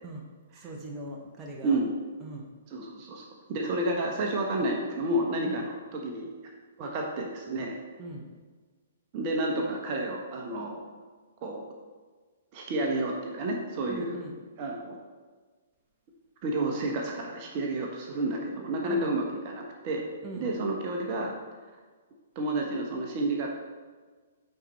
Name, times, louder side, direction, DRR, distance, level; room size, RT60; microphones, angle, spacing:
voice 1, 0.5-1.8 2.2-2.5 5.4-5.6 8.0-8.2 13.9-14.3 18.9-19.1 20.2-20.5, right 2 dB, 20° right, -1 dB, 1.1 m, -40 dB
voice 2, 2.7-6.3 6.8-7.8 9.1-10.8 11.4-11.6 12.5-14.2 14.6-15.0 16.4-20.0 20.4-21.3 22.3-23.5, right 1 dB, 40° right, 0 dB, 1.1 m, -30 dB
8.7 x 4.6 x 4.2 m, 1.4 s
figure-of-eight pair, 120°, 0 cm